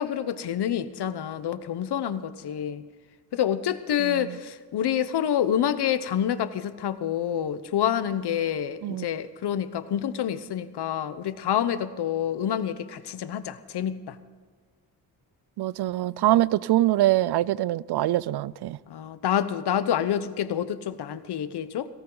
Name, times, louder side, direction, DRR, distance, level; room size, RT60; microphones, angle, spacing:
voice 1, 0.0-2.8 3.3-14.2 18.9-21.9, left 9 dB, 80° left, 1.0 m, -27 dB
voice 2, 4.0-4.3 8.8-9.0 15.6-18.8, right 15 dB, 75° right, 0.5 m, -24 dB
17.5 x 17.5 x 3.9 m
wide cardioid pair, 125°, 39 cm